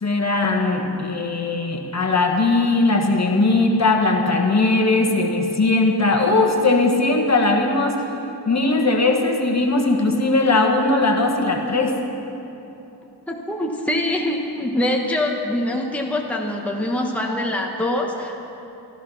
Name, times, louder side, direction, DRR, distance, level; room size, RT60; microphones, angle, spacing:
voice 1, 0.0-8.0 8.5-12.0, left 2 dB, 40° left, 2 dB, 1.5 m, -19 dB
voice 2, 13.3-18.4, left 1 dB, 5° left, 0 dB, 1.2 m, -24 dB
14.5 x 13.5 x 5.7 m, 2.9 s
wide cardioid pair, 100°, 41 cm